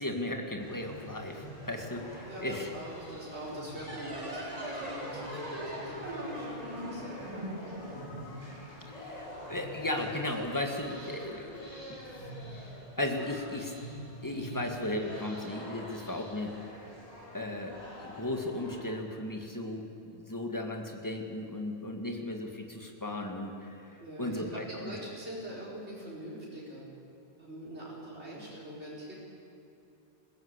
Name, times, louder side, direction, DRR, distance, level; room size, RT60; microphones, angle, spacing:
voice 1, 0.0-2.7 8.9-12.6 13.0-13.7 14.2-16.5 17.3-24.9, left 1 dB, 15° left, 3 dB, 2.0 m, -36 dB
sound 1, 0.6-18.8, equal, 40° left, 4.6 m, -46 dB
voice 2, 2.2-7.4 24.0-26.9 27.4-29.1, right 1 dB, 75° right, -6 dB, 4.7 m, -43 dB
sound 2, 3.7-9.0, equal, 35° right, 2.5 m, -40 dB
21.0 x 16.0 x 8.2 m, 2.7 s
omnidirectional pair, 1.1 m